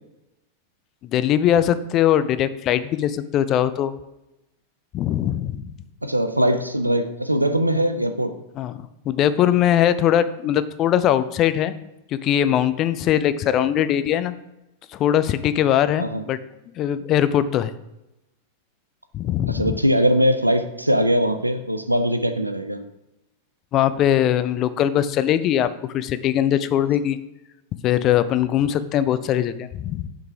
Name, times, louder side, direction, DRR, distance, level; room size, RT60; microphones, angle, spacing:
voice 1, 1.1-3.9 4.9-5.7 8.6-8.7 9.1-11.7 12.1-14.3 14.9-16.4 16.8-17.7 19.1-19.8 23.7-25.7 25.9-27.2 27.8-30.1, left 11 dB, 35° left, 13 dB, 0.4 m, -21 dB
voice 2, 6.0-8.3 16.0-16.2 19.5-22.8, equal, 85° right, 9 dB, 0.4 m, -21 dB
5.5 x 3.8 x 4.7 m, 0.94 s
figure-of-eight pair, 90°, 0 cm